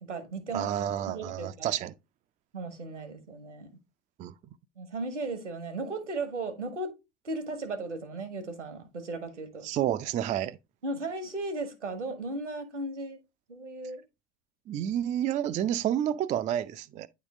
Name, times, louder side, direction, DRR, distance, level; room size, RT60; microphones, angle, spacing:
voice 1, 0.0-0.7 1.1-1.7 2.5-3.7 4.8-6.9 7.2-9.7 10.8-13.2 13.5-14.0, right 2 dB, 85° right, 1.5 m, -36 dB
voice 2, 0.5-1.9 4.2-4.3 9.6-10.6 14.7-17.1, right 11 dB, 20° right, 0.4 m, -30 dB
9.4 x 3.7 x 3.5 m
figure-of-eight pair, 75°, 35 cm